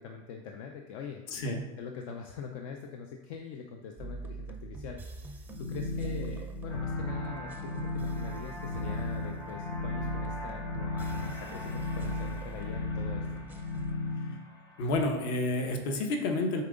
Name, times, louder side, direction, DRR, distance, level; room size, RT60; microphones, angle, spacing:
voice 1, 0.0-1.2 1.8-13.3, left 6 dB, 80° left, 3 dB, 0.6 m, -43 dB
voice 2, 1.3-1.6 14.8-16.6, left 2 dB, 60° left, 4 dB, 1.1 m, -29 dB
sound 1, 4.0-13.9, right 3 dB, 10° right, 0.4 m, -43 dB
sound 2, 5.5-14.3, left 2 dB, 40° left, 1.6 m, -36 dB
sound 3, 6.7-15.2, equal, 20° left, 0.9 m, -46 dB
7.3 x 4.2 x 3.8 m, 1.1 s
cardioid pair, 175°, 17 cm